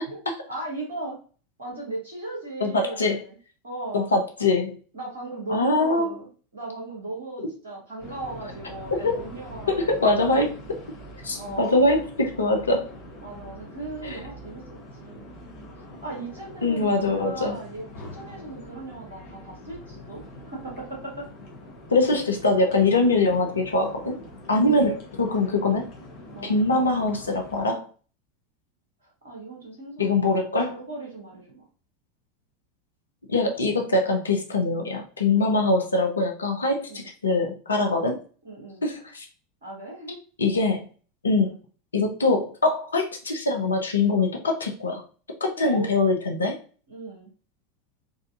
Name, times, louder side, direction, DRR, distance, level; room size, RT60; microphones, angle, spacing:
voice 1, 0.5-1.2 1.6-3.4 3.6-4.1 4.9-10.5 11.3-11.8 13.2-14.6 15.0-15.3 16.0-21.3 24.6-25.0 26.3-26.5 29.0-30.4 30.7-31.6 36.9-37.1 38.4-38.8 39.6-40.2 41.4-41.6 45.6-45.9 46.9-47.3, right 2 dB, 70° right, -2 dB, 1.1 m, -37 dB
voice 2, 2.6-3.2 3.9-4.8 5.5-6.1 8.9-9.2 9.7-10.6 11.2-12.9 14.0-14.2 16.6-17.6 21.9-24.1 24.5-25.9 26.5-27.9 30.0-30.8 33.3-38.2 38.8-39.3 40.4-40.9 41.2-41.5 41.9-45.0 45.4-46.6, left 2 dB, 80° left, 2 dB, 0.6 m, -23 dB
sound 1, 8.0-27.7, left 1 dB, 50° left, 1.0 m, -44 dB
4.0 x 2.5 x 2.4 m, 0.40 s
figure-of-eight pair, 80°, 0 cm